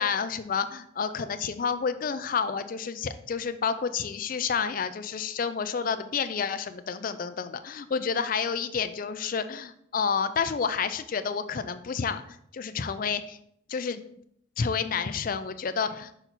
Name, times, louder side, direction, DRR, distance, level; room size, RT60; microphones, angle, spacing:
voice 1, 0.0-12.2 12.5-13.4 13.7-14.0 14.6-16.2, left 6 dB, 45° left, 11 dB, 0.4 m, -29 dB
5.9 x 4.4 x 4.0 m, 0.72 s
head